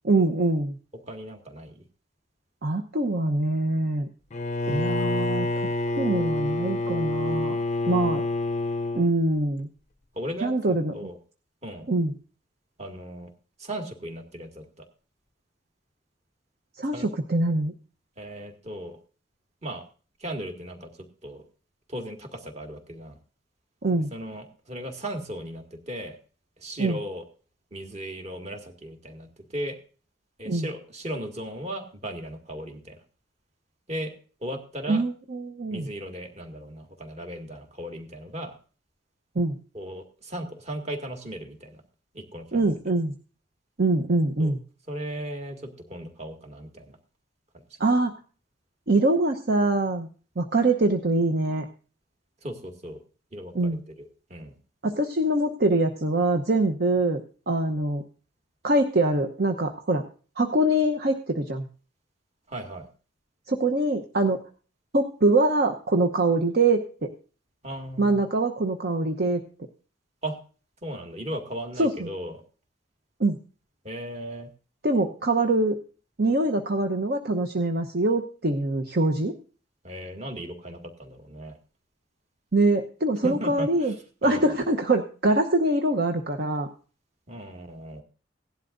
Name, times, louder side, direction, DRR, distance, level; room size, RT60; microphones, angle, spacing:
voice 1, 0.0-0.7 2.6-4.1 4.7-5.5 6.0-7.6 7.9-8.2 8.9-9.7 10.4-10.9 11.9-12.1 16.8-17.7 23.8-24.1 26.8-27.0 30.4-30.7 34.9-35.9 39.3-39.6 42.5-43.1 43.8-44.6 47.8-48.1 48.9-50.1 50.4-51.7 53.5-53.8 54.8-57.2 57.5-58.0 58.6-60.0 60.4-61.7 63.5-64.4 64.9-67.1 68.0-69.4 71.8-71.9 73.2-73.4 74.8-75.8 76.2-79.3 82.5-83.9 84.2-86.7, right 2 dB, 50° right, 5 dB, 0.9 m, -24 dB
voice 2, 1.1-1.8 7.9-8.1 10.2-11.2 11.6-11.9 12.8-13.3 13.6-14.9 16.9-17.1 18.2-19.0 19.6-19.8 20.2-20.9 21.2-21.4 21.9-23.2 24.1-26.2 26.6-27.2 27.7-29.3 29.5-29.8 30.4-33.0 33.9-34.1 34.4-35.0 35.7-38.5 39.7-41.8 42.1-42.7 44.4-44.5 44.9-47.0 52.4-53.0 53.3-54.5 62.5-62.9 67.6-68.2 70.2-70.4 70.8-72.4 73.8-74.5 79.8-81.6 83.2-84.0 84.2-84.4 87.3-88.0, right 1 dB, 35° right, 4 dB, 2.0 m, -36 dB
Bowed string instrument, 4.3-9.1, left 2 dB, 35° left, 0.5 m, -27 dB
17.5 x 11.5 x 2.6 m, 0.38 s
head